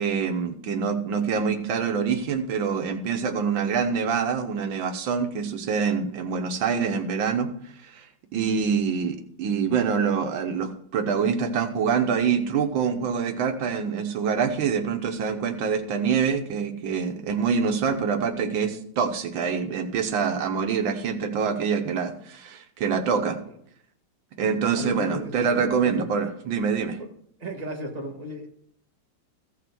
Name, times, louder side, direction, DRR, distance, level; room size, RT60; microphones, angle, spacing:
voice 1, 0.0-7.5 7.8-8.1 8.3-23.4 24.4-27.0, right 6 dB, 90° right, 7 dB, 1.8 m, -25 dB
voice 2, 24.8-26.1 27.0-27.1 27.4-28.5, equal, 20° right, 1 dB, 1.8 m, -34 dB
15.0 x 5.8 x 6.1 m, 0.66 s
omnidirectional pair, 2.1 m